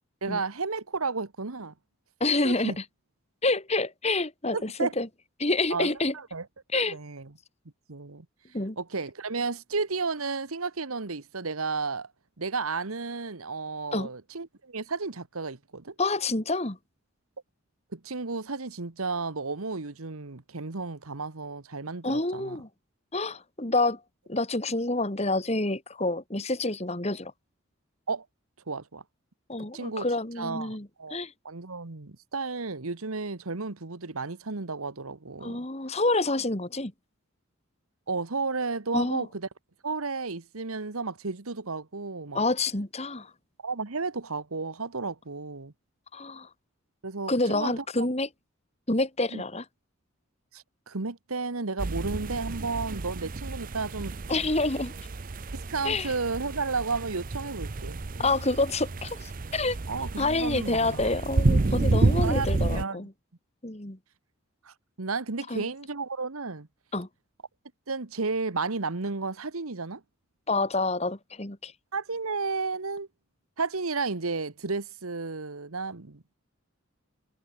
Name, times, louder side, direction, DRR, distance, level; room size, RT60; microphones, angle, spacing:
voice 1, 0.2-1.7 2.4-2.8 4.5-4.9 5.7-5.9 6.1-6.5 6.7-7.3 7.9-8.3 8.8-12.1 12.4-15.9 17.9-22.6 28.1-28.2 28.7-29.0 29.7-30.0 30.4-35.6 38.1-39.5 39.8-42.4 43.6-45.7 47.0-48.1 49.3-49.4 50.5-54.2 55.5-58.0 59.9-61.1 62.2-63.0 64.6-66.7 67.9-70.0 71.9-73.1 73.6-76.4, right 4 dB, 90° right, 1.4 m, -33 dB
voice 2, 2.2-2.8 3.4-5.1 5.4-6.1 6.7-7.0 8.5-8.8 13.9-14.1 16.0-16.8 22.0-22.7 23.1-24.0 24.3-27.3 29.5-31.3 35.4-36.9 38.9-39.3 42.3-43.3 46.1-46.5 47.3-48.3 48.9-49.6 54.3-54.9 55.8-56.1 58.2-59.8 60.2-63.1 63.6-64.0 65.5-65.7 66.9-67.1 70.5-71.7, left 2 dB, 30° left, 2.0 m, -28 dB
sound 1, 51.8-62.8, right 2 dB, 40° right, 0.6 m, -29 dB
head